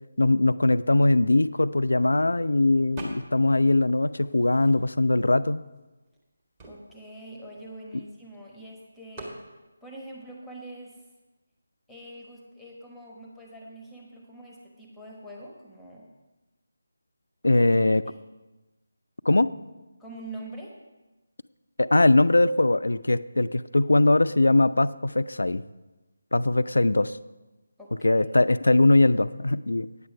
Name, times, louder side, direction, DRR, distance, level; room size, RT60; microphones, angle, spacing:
voice 1, 0.2-5.6 7.9-8.0 17.4-18.0 19.3-19.5 21.8-25.6 26.3-27.1 28.0-29.9, left 2 dB, 70° left, 14 dB, 0.4 m, -21 dB
sound 1, 3.0-3.5 3.9-5.1 5.8-5.9 6.1-8.3 9.1-9.4, right 1 dB, 20° right, 1.7 m, -44 dB
voice 2, 6.6-9.4 9.8-11.0 11.9-16.1 18.0-18.2 20.0-20.8 27.8-28.3, right 1 dB, ahead, -3 dB, 1.1 m, -44 dB
9.4 x 7.6 x 5.7 m, 1.1 s
figure-of-eight pair, 155°, 0 cm